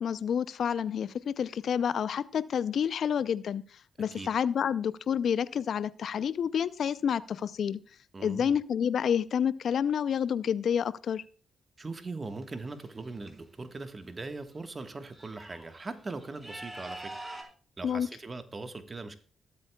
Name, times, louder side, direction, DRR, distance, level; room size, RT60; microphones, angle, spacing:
voice 1, 0.0-3.6 4.0-7.8 8.2-11.2 17.8-18.1, left 8 dB, 65° left, 17 dB, 0.5 m, -29 dB
voice 2, 8.1-8.5 11.8-17.1 17.8-19.2, right 3 dB, 35° right, 8 dB, 1.3 m, -40 dB
sound 1, 12.2-13.3 14.5-14.6 14.9-17.4, right 1 dB, 20° right, 3.9 m, -45 dB
20.5 x 8.2 x 2.3 m, 0.41 s
hypercardioid pair, 45°, 0 cm